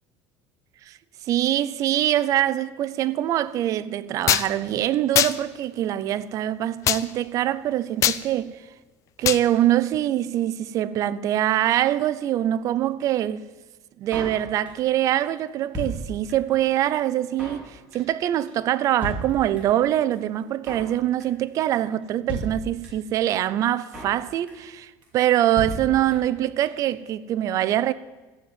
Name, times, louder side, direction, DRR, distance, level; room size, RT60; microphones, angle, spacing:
voice 1, 1.3-8.6 9.2-13.4 14.0-27.9, right 12 dB, 45° right, 0.6 m, -24 dB
sound 1, 4.3-4.5 5.1-5.3 6.8-7.0 8.0-8.2 9.2-9.4, left 12 dB, 45° left, 0.6 m, -20 dB
Drum kit, 14.1-14.9 15.2-15.3 15.5-16.6 16.8-16.9 17.1-17.7 17.9-18.2 18.5-18.6 18.7-18.8 19.0-19.8 20.1-20.2 20.4-20.9 21.2-21.5 21.7-21.8 22.0-22.1 22.3-23.1 23.4-23.5 23.7-24.2 24.5-24.8 25.0-25.1 25.3-25.4 25.6-26.4 26.7-26.8 26.9-27.0, right 1 dB, 15° right, 5.1 m, -34 dB
13.5 x 8.0 x 9.3 m
cardioid pair, 145°, 8 cm